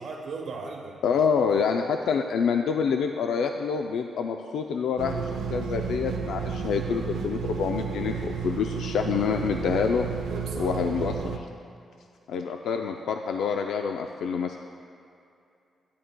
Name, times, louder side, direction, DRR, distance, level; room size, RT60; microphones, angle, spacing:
voice 1, 0.0-1.0 1.5-1.6 10.3-10.8, right 4 dB, 60° right, 0 dB, 1.1 m, -37 dB
voice 2, 1.0-5.2 5.5-10.0 10.6-11.5 12.3-14.6, left 6 dB, 80° left, 4 dB, 0.3 m, -27 dB
sound 1, 5.0-11.4, right 6 dB, 85° right, 0.4 m, -32 dB
11.0 x 9.2 x 2.2 m, 2.6 s
wide cardioid pair, 175°, 0 cm